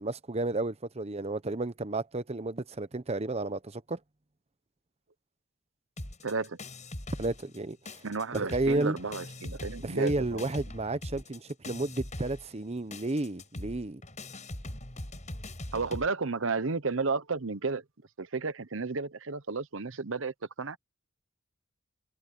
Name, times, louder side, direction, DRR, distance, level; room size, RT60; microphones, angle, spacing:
voice 1, 0.0-4.0 7.2-8.0 8.3-9.0 9.8-14.0, right 2 dB, 30° right, 0.8 m, -32 dB
sound 1, 6.0-7.6 7.9-16.1, left 1 dB, 35° left, 6.3 m, -41 dB
voice 2, 6.2-6.6 8.0-10.4 15.7-17.8 18.2-20.8, right 4 dB, 70° right, 1.0 m, -32 dB
head